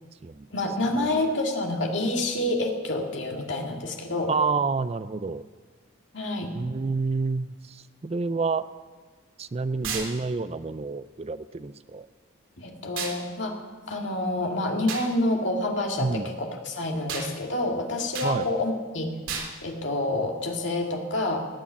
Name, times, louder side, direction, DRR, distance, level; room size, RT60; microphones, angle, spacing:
voice 1, 0.5-4.3 6.1-6.5 12.6-13.6 13.9-19.1 19.6-21.5, left 2 dB, 60° left, 2 dB, 2.3 m, -28 dB
voice 2, 4.3-5.5 6.5-8.7 9.4-12.1 16.0-16.3 18.2-18.5, right 4 dB, 30° right, 13 dB, 0.4 m, -29 dB
sound 1, 9.8-10.1 13.0-13.2 14.9-15.1 17.1-17.3 18.1-18.3 19.3-19.5, right 5 dB, 75° right, 3.1 m, -32 dB
19.0 x 8.5 x 8.5 m, 1.4 s
head